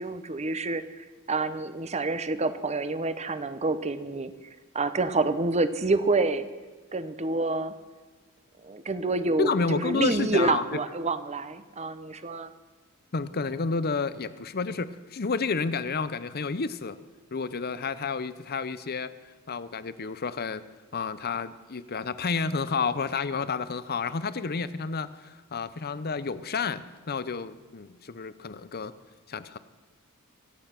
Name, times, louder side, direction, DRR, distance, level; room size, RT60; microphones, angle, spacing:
voice 1, 0.0-4.3 4.7-6.5 6.9-7.8 8.6-12.5, right 3 dB, 30° right, 12 dB, 0.8 m, -28 dB
voice 2, 9.4-10.6 13.1-17.0 17.3-19.1 19.5-20.6 20.9-28.9 29.3-29.6, left 4 dB, 45° left, 14 dB, 0.7 m, -30 dB
24.5 x 8.8 x 5.9 m, 1.3 s
head